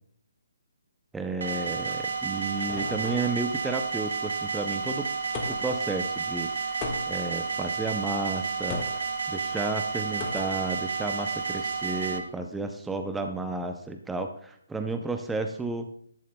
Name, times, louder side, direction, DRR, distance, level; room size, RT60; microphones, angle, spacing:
voice 1, 1.1-5.1 5.5-6.8 7.1-8.8 9.3-15.9, right 3 dB, 5° right, 6 dB, 0.5 m, -32 dB
sound 1, 1.4-12.2, right 5 dB, 70° right, 1.1 m, -31 dB
sound 2, 1.9-3.5 5.3-5.8 6.8-7.4 8.7-9.1 10.2-10.7, left 4 dB, 20° left, 1.5 m, -37 dB
14.0 x 11.5 x 2.2 m, 0.65 s
hypercardioid pair, 160°, 0 cm